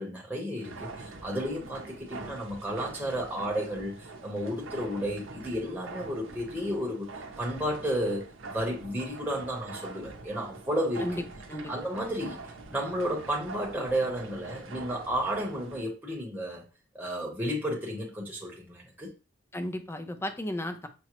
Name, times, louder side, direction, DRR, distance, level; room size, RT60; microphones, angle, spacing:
voice 1, 0.0-7.1 7.4-11.1 11.7-12.4 12.7-16.6 16.9-19.1, equal, 10° right, 0.8 m, -32 dB
sound 1, 0.6-15.9, right 3 dB, 90° right, 0.6 m, -44 dB
voice 2, 19.5-20.9, left 1 dB, 15° left, 0.4 m, -34 dB
5.9 x 2.0 x 2.9 m
head